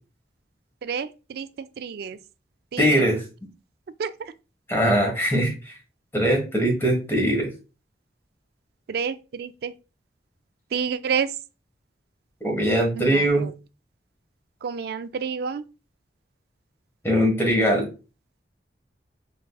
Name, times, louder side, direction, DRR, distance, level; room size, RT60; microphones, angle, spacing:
voice 1, 0.8-1.5 1.8-2.2 2.7-2.9 4.0-4.1 8.9-9.7 10.7-11.3 13.0-13.2 14.6-15.6, right 6 dB, 60° right, 0.3 m, -28 dB
voice 2, 2.8-3.2 4.7-5.5 6.1-7.5 12.4-13.4 17.0-17.9, equal, 15° left, 1.5 m, -21 dB
5.1 x 3.9 x 2.3 m
head